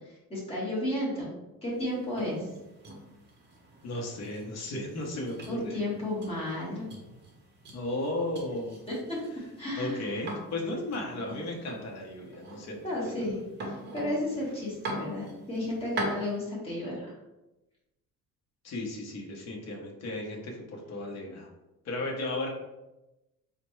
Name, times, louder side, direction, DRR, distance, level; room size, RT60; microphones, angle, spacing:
voice 1, 0.3-1.3 1.6-2.5 5.5-6.9 8.9-9.0 9.6-10.2 12.8-17.1, left 1 dB, 15° left, -6 dB, 1.2 m, -33 dB
sound 1, 1.7-16.4, right 1 dB, 30° right, 0.7 m, -43 dB
voice 2, 3.8-5.8 7.7-8.8 9.8-12.8 13.0-13.2 18.6-21.5 21.8-22.5, left 2 dB, 45° left, -1 dB, 0.8 m, -35 dB
4.2 x 2.2 x 3.0 m, 0.98 s
cardioid pair, 165°, 36 cm